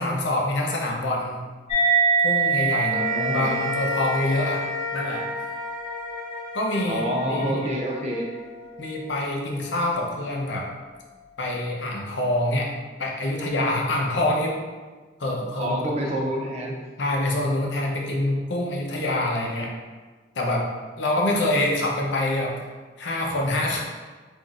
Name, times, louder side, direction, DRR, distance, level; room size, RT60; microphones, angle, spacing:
voice 1, 0.0-1.4 2.2-4.6 4.9-5.2 6.5-7.7 8.8-10.7 11.4-12.7 13.0-14.6 15.2-15.7 16.0-16.2 17.0-19.7 20.4-20.7 21.0-22.6 23.0-23.8, left 1 dB, 80° left, -1 dB, 0.7 m, -25 dB
sound 1, 1.7-8.6, right 4 dB, 30° left, 0.9 m, -26 dB
sound 2, 2.8-9.3, left 2 dB, 15° right, 1.4 m, -34 dB
voice 2, 2.8-3.5 6.9-8.3 15.6-16.8, equal, 35° right, -1 dB, 0.4 m, -28 dB
5.6 x 2.6 x 2.4 m, 1.4 s
head